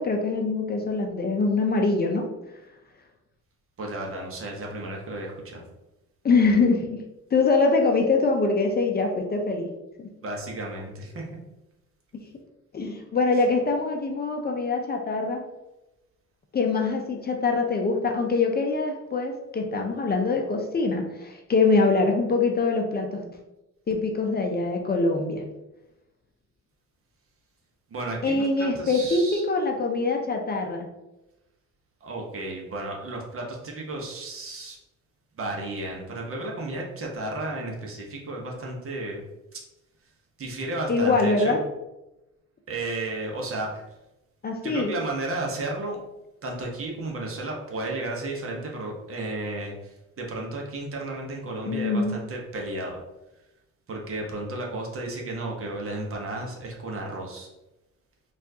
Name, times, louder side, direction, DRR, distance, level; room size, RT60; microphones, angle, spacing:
voice 1, 0.0-2.3 6.2-7.0 7.3-9.7 10.0-10.1 12.7-15.4 16.5-23.3 23.9-25.4 28.2-30.9 40.9-41.6 44.4-44.9 51.7-52.2, left 3 dB, 30° left, 3 dB, 0.5 m, -24 dB
voice 2, 3.8-5.6 10.2-11.2 13.3-13.5 27.9-28.5 28.8-29.4 32.0-34.8 35.4-39.2 39.5-39.6 40.4-41.6 42.7-43.8 44.6-46.0 46.4-53.0 53.9-57.5, right 2 dB, 45° right, 0 dB, 0.9 m, -33 dB
4.2 x 2.5 x 2.7 m, 0.96 s
cardioid pair, 90°, 30 cm